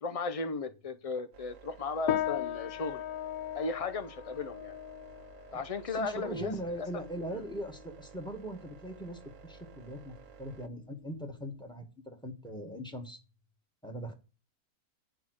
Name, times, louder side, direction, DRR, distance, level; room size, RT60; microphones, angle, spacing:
voice 1, 0.0-3.0 3.5-4.8 5.5-6.5 6.8-6.9, left 4 dB, 50° left, 10 dB, 0.4 m, -35 dB
sound 1, 0.6-1.8 6.4-7.9 12.4-13.6, left 3 dB, 90° right, 1.8 m, -58 dB
sound 2, 1.3-10.7, right 7 dB, 65° right, 1.1 m, -54 dB
sound 3, 2.1-11.7, left 10 dB, 90° left, 1.2 m, -39 dB
voice 2, 5.9-10.1 10.4-13.2 13.8-14.1, right 1 dB, 5° left, 4 dB, 1.6 m, -40 dB
9.2 x 5.7 x 6.3 m, 0.32 s
omnidirectional pair, 1.5 m